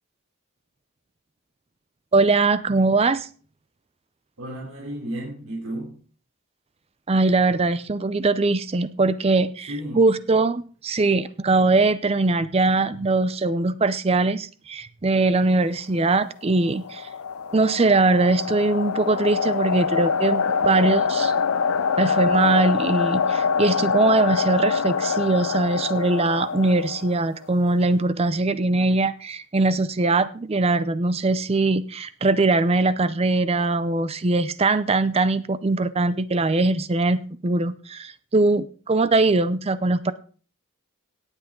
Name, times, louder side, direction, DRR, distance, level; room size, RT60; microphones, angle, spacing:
voice 1, 2.1-3.3 7.1-17.1 17.5-21.3 22.0-40.1, right 3 dB, 25° right, 15 dB, 0.5 m, -21 dB
voice 2, 4.4-5.9 9.7-10.1, right 1 dB, 75° right, -3 dB, 3.4 m, -32 dB
sound 1, 16.5-27.4, left 5 dB, 70° left, 0.5 m, -25 dB
18.0 x 8.2 x 3.7 m, 0.41 s
head